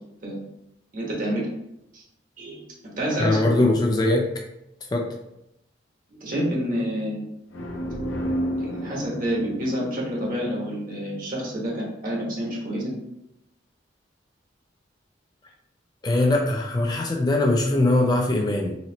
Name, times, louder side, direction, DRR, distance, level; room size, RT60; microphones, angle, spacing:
voice 1, 0.9-1.5 1.9-2.0 2.4-3.4 6.2-7.2 8.6-12.9, equal, 45° right, -3 dB, 1.2 m, -28 dB
voice 2, 3.2-4.3 4.9-5.1 16.0-18.8, left 2 dB, 20° left, 1 dB, 0.4 m, -21 dB
sound 1, 7.5-11.2, equal, 80° left, 0.6 m, -31 dB
4.2 x 3.0 x 2.8 m, 0.83 s
head